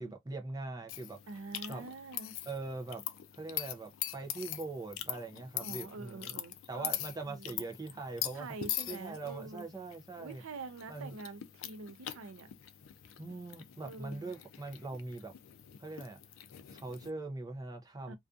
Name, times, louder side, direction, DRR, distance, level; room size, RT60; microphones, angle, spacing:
voice 1, 0.0-1.2 1.7-1.8 2.5-3.0 3.3-6.3 6.7-8.5 8.9-10.4 10.9-11.1 13.2-15.3 15.8-16.2 16.7-18.2, right 3 dB, 20° right, 0.4 m, -42 dB
sound 1, 0.9-17.1, left 12 dB, 70° left, 0.4 m, -43 dB
voice 2, 1.3-2.3 5.6-6.9 7.2-7.7 8.2-9.7 10.2-12.5 13.8-14.3 18.1-18.2, right 3 dB, 80° right, 0.5 m, -46 dB
2.5 x 2.3 x 2.3 m
head